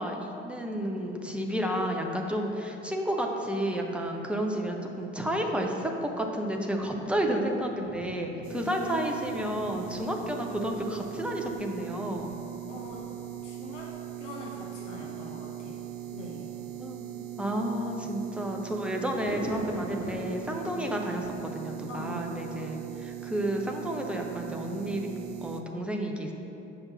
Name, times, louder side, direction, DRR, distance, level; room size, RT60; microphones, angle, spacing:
voice 1, 0.0-12.3 16.8-25.1 25.4-26.3, equal, 5° right, 1 dB, 0.8 m, -31 dB
sound 1, 3.5-3.6 4.5-4.6 5.2-15.3 19.0-20.3, equal, 30° right, 1.4 m, -45 dB
sound 2, 8.4-25.6, right 12 dB, 55° right, 0.5 m, -40 dB
voice 2, 12.7-13.0 13.4-13.9 14.2-16.5 21.9-22.3, left 2 dB, 80° left, -3 dB, 0.9 m, -43 dB
8.0 x 5.3 x 4.0 m, 2.9 s
figure-of-eight pair, 55°, 36 cm